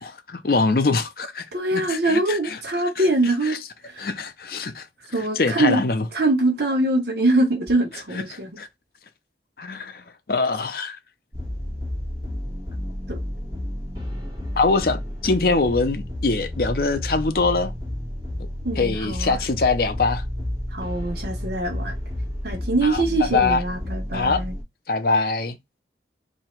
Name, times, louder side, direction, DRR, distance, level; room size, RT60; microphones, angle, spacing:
voice 1, 0.0-1.4 1.7-2.6 4.0-4.9 5.4-6.0 8.1-8.2 8.6-8.7 9.6-10.0 10.3-11.0 14.5-17.7 18.8-20.2 22.8-23.0 23.3-23.6 24.1-24.4 24.9-25.6, left 3 dB, 55° left, 0.6 m, -23 dB
voice 2, 1.5-3.6 3.9-4.1 5.1-5.8 6.1-8.6 13.1-13.2 18.6-19.4 20.7-22.0 22.4-24.5, right 2 dB, 65° right, 1.0 m, -23 dB
sound 1, 11.3-24.6, left 1 dB, 20° right, 1.6 m, -31 dB
2.9 x 2.7 x 4.4 m
head